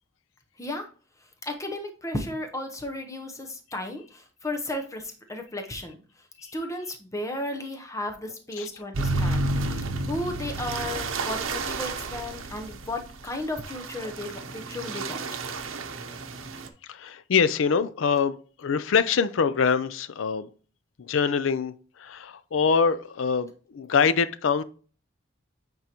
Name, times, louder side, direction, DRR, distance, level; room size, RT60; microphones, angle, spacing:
voice 1, 1.4-6.0 6.5-15.3, left 1 dB, 15° left, 0.8 m, -34 dB
sound 1, 8.9-16.7, right 2 dB, 80° right, 0.8 m, -31 dB
voice 2, 16.9-20.5 21.0-21.7 22.0-24.6, left 6 dB, 70° left, 0.4 m, -24 dB
8.7 x 3.8 x 2.9 m
head